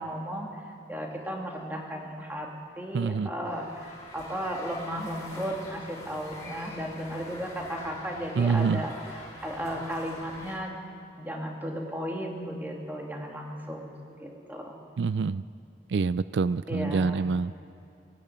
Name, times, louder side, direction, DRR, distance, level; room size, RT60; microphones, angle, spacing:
voice 1, 0.0-2.5 2.8-8.9 9.4-10.8 11.2-14.8 16.7-17.2, equal, 10° right, 0 dB, 2.6 m, -35 dB
voice 2, 2.9-3.3 8.4-8.8 15.0-15.4 15.9-17.5, right 5 dB, 80° right, 16 dB, 0.4 m, -26 dB
sound 1, 3.4-10.6, left 2 dB, 20° left, 3.5 m, -44 dB
17.5 x 17.0 x 9.3 m, 2.6 s
head